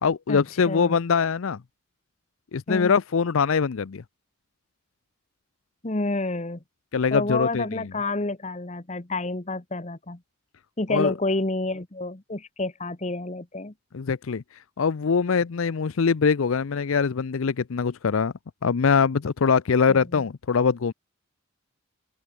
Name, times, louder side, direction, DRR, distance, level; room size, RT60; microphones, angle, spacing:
voice 1, 0.0-1.6 2.5-4.0 6.9-7.9 10.9-11.1 13.9-14.4 14.8-18.3 18.6-20.9, left 5 dB, 70° left, 0.5 m, -23 dB
voice 2, 0.7-1.0 2.7-3.0 5.8-6.6 7.1-10.2 10.8-13.7 19.9-20.2, left 2 dB, 30° left, 1.2 m, -29 dB
head